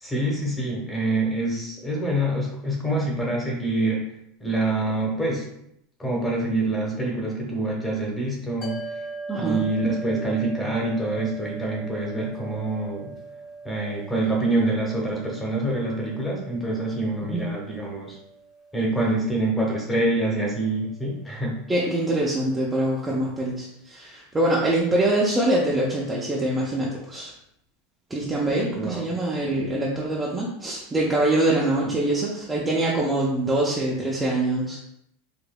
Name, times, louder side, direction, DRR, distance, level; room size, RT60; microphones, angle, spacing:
voice 1, 0.0-4.1 4.4-5.4 6.0-8.8 9.4-13.1 13.6-18.2 18.7-21.6 28.8-29.0 31.8-31.9, right 2 dB, 10° left, -2 dB, 1.0 m, -26 dB
sound 1, 8.6-21.1, right 3 dB, 35° left, 1.1 m, -41 dB
voice 2, 9.3-9.6 17.2-17.4 21.7-27.3 28.1-34.8, right 1 dB, 10° right, -5 dB, 0.6 m, -24 dB
4.9 x 2.6 x 2.2 m, 0.75 s
supercardioid pair, 145°, 0 cm